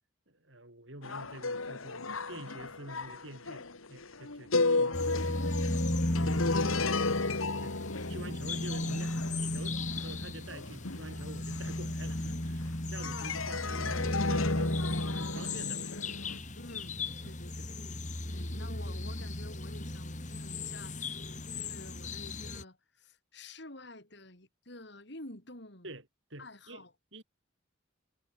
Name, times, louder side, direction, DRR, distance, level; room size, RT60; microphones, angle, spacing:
voice 1, 0.3-7.0 7.6-7.8 8.1-15.9 17.2-17.4 25.8-26.0 26.3-26.8 27.1-27.2, right 1 dB, 65° right, 6.4 m, -48 dB
sound 1, 1.0-12.6 13.0-16.4, left 3 dB, 90° left, 2.2 m, -34 dB
voice 2, 4.6-4.9 12.9-13.4 16.5-18.0 18.3-20.9 21.5-25.9 26.4-26.9, left 2 dB, 55° left, 4.6 m, -49 dB
sound 2, 4.9-22.6, left 1 dB, 35° left, 2.9 m, -35 dB
head